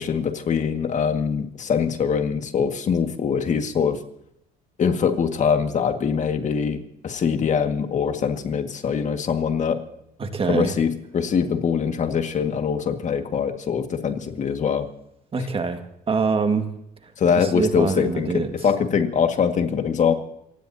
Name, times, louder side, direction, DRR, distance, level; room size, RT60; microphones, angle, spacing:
voice 1, 0.0-4.0 4.8-9.8 10.4-14.9 17.2-20.1, left 6 dB, 45° left, 6 dB, 1.9 m, -23 dB
voice 2, 10.2-10.7 15.3-15.8 16.1-16.7 17.4-18.5, right 4 dB, 35° right, 6 dB, 1.8 m, -24 dB
28.0 x 16.0 x 2.8 m, 0.79 s
cardioid pair, 110°, 17 cm